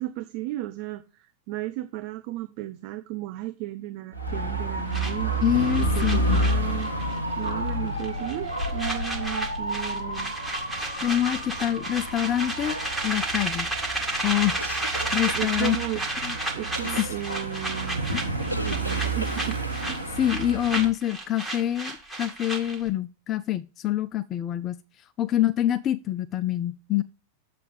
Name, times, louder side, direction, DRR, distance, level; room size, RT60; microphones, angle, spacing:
voice 1, 0.0-5.3 5.8-6.9 7.4-10.4 15.3-16.0 16.5-18.3 18.6-19.6 19.9-20.0, right 16 dB, 45° right, 0.7 m, -34 dB
Dog / Motorcycle, 4.1-20.9, right 1 dB, 90° right, 1.3 m, -30 dB
sound 1, 4.9-7.2 7.4-7.7 8.0-22.9, right 2 dB, 5° right, 2.0 m, -32 dB
voice 2, 5.4-6.5 11.0-12.8 13.0-13.7 14.2-14.6 15.1-15.8 16.2-16.4 16.9-17.2 18.1-18.2 20.2-24.8 25.2-27.0, left 12 dB, 30° left, 0.4 m, -26 dB
sound 2, 14.6-15.8 16.8-17.2 18.5-19.8, equal, 85° left, 0.8 m, -36 dB
9.1 x 7.5 x 3.4 m
figure-of-eight pair, 90°, 0 cm